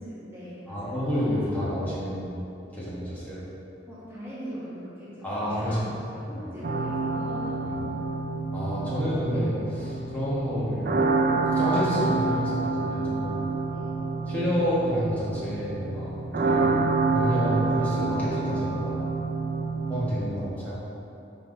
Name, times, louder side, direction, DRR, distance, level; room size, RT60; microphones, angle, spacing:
voice 1, 0.0-1.0 3.9-7.8 13.7-14.1, equal, 10° right, -11 dB, 1.2 m, -40 dB
voice 2, 0.7-2.4 2.7-3.4 5.2-5.9 6.3-6.4 7.6-7.7 8.5-11.0 11.4-13.4 14.3-16.8 17.1-19.0 19.9-20.8, equal, 10° left, -10 dB, 1.4 m, -29 dB
sound 1, 6.6-20.1, right 3 dB, 45° right, 0.3 m, -27 dB
5.6 x 4.5 x 3.9 m, 2.8 s
head